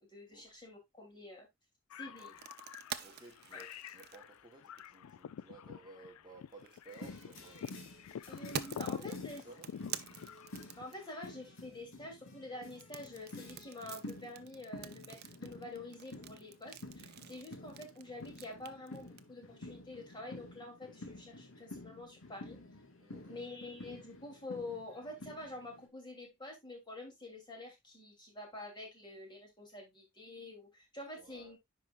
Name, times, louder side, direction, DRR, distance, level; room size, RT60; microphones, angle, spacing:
voice 1, 0.0-1.5 2.0-2.3 3.5-3.6 8.2-9.4 10.8-22.6 23.3-31.6, left 2 dB, 20° left, 3.0 m, -47 dB
sound 1, 1.9-11.3, left 8 dB, 85° left, 0.3 m, -47 dB
sound 2, 2.2-5.1 6.5-11.3 12.7-19.2, right 9 dB, 50° right, 0.6 m, -47 dB
voice 2, 3.0-7.7 8.9-9.2 9.4-9.7 23.0-23.4 31.2-31.5, right 2 dB, 20° right, 1.3 m, -56 dB
sound 3, 6.9-25.9, left 2 dB, 70° left, 1.9 m, -51 dB
10.0 x 4.8 x 2.5 m
head